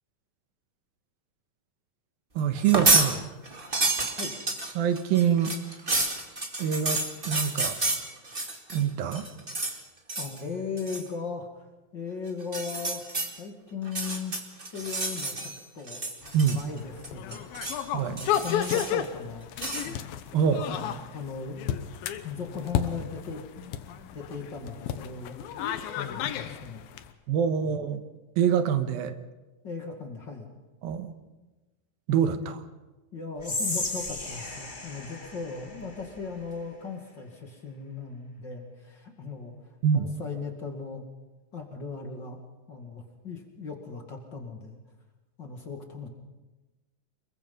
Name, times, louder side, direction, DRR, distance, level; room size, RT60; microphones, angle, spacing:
voice 1, 2.4-3.3 4.8-5.6 6.6-7.8 8.7-9.3 16.3-16.6 17.9-18.2 20.3-20.6 27.3-28.0 28.4-29.2 30.8-31.1 32.1-32.6 39.8-40.1, right 8 dB, 90° right, 9 dB, 3.0 m, -25 dB
sound 1, 2.6-3.1 3.5-8.8 9.1-9.8 10.1-10.4 10.8-11.1 12.4-13.3 13.8-15.6 15.9-16.8 17.0-17.8 18.2-19.0 19.6-19.9, right 2 dB, 20° right, 1.7 m, -29 dB
voice 2, 10.1-13.0 13.3-14.3 14.7-16.0 16.5-17.6 18.0-19.5 19.8-20.0 20.3-21.8 22.2-23.8 24.1-25.4 25.9-26.9 27.6-27.8 29.6-30.5 32.4-32.6 33.1-41.0 41.5-42.4 42.7-44.8 45.4-46.1, left 5 dB, 35° left, 2 dB, 2.4 m, -38 dB
sound 2, 16.2-27.1, left 9 dB, 85° left, 2.9 m, -33 dB
Whispering, 33.4-36.6, left 2 dB, 20° left, 1.5 m, -35 dB
26.5 x 22.0 x 5.5 m, 1.1 s
omnidirectional pair, 4.1 m